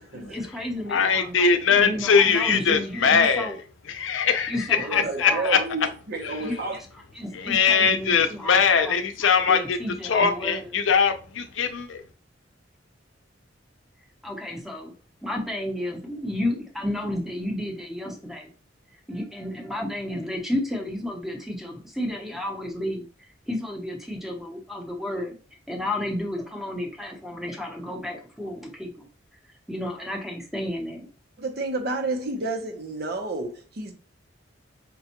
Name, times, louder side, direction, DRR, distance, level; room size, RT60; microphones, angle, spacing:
voice 1, 0.1-3.5 4.5-5.6 6.4-6.6 7.1-10.6 14.2-14.9 15.2-18.5 19.1-25.3 25.7-29.1 29.7-31.1, left 1 dB, ahead, 0.8 m, -32 dB
voice 2, 0.9-3.5 3.9-5.6 6.2-6.5 7.3-9.8 10.0-12.0, left 6 dB, 85° left, 0.6 m, -21 dB
voice 3, 4.8-6.8 31.4-33.9, right 2 dB, 55° right, 0.8 m, -30 dB
5.2 x 2.3 x 2.8 m
head